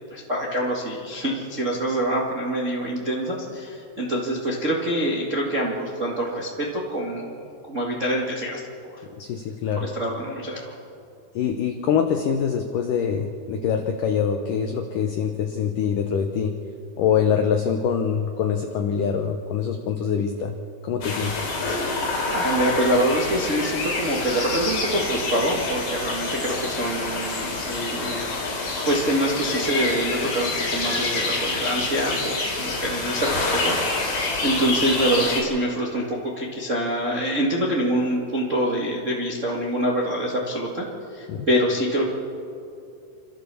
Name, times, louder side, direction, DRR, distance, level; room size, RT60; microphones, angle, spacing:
voice 1, 0.0-8.9 9.7-10.8 22.3-28.3 28.8-42.1, right 1 dB, 80° right, -3 dB, 0.6 m, -25 dB
voice 2, 9.2-9.9 11.4-16.6 17.0-20.6 20.8-21.4 41.3-41.5, left 7 dB, 85° left, 5 dB, 1.8 m, -24 dB
sound 1, 21.0-35.4, left 3 dB, 50° left, 4.9 m, -27 dB
28.5 x 13.0 x 7.0 m, 2.5 s
omnidirectional pair, 5.1 m